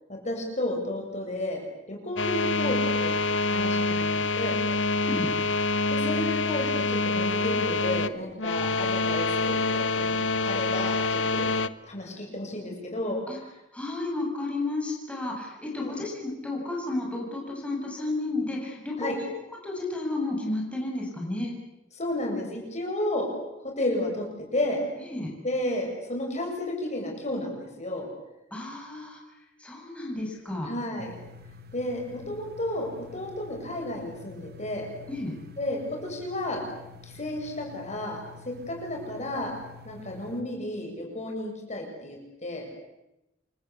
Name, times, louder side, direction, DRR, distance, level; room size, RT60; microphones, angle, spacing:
voice 1, 0.2-1.6 1.9-3.1 3.5-4.1 4.4-4.6 5.9-10.1 10.4-11.5 11.8-13.2 15.8-16.0 19.0-19.1 22.0-23.3 23.8-24.3 24.5-24.8 25.4-28.1 30.6-31.1 31.7-32.9 33.1-34.9 35.6-36.6 37.0-38.2 38.5-39.5 39.8-42.6, left 1 dB, 40° left, 1 dB, 7.4 m, -32 dB
sound 1, 2.2-11.7, left 3 dB, 75° left, 1.1 m, -26 dB
voice 2, 5.0-5.4 13.3-13.4 13.7-19.3 19.6-21.5 25.1-25.3 28.5-29.2 29.6-30.7 35.1-35.3, left 2 dB, 5° left, -2 dB, 7.1 m, -32 dB
sound 2, 31.0-40.4, left 4 dB, 55° right, 1.5 m, -48 dB
29.0 x 24.5 x 8.3 m, 0.92 s
head